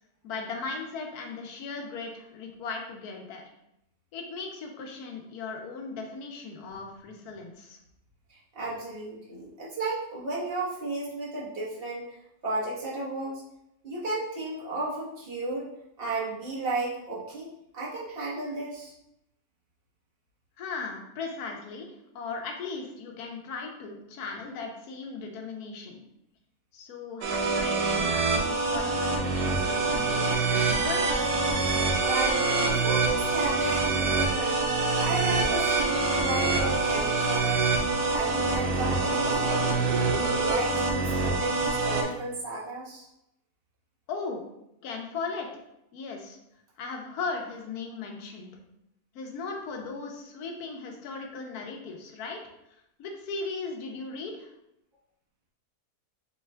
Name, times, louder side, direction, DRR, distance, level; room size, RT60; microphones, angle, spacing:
voice 1, 0.2-3.4 4.1-7.8 20.6-21.9 22.1-26.1 26.7-31.0 44.1-44.4 44.8-45.5 45.9-46.4 46.8-48.5 49.1-52.4 53.0-54.5, left 4 dB, 75° left, 1 dB, 1.2 m, -37 dB
voice 2, 8.3-13.4 13.8-15.7 16.0-18.9 32.0-34.6 35.0-37.7 38.1-39.7 40.2-43.1, right 2 dB, 40° right, -6 dB, 1.2 m, -34 dB
sound 1, 27.2-42.0, right 3 dB, 90° right, 1.2 m, -25 dB
5.2 x 2.3 x 3.2 m, 0.83 s
omnidirectional pair, 1.7 m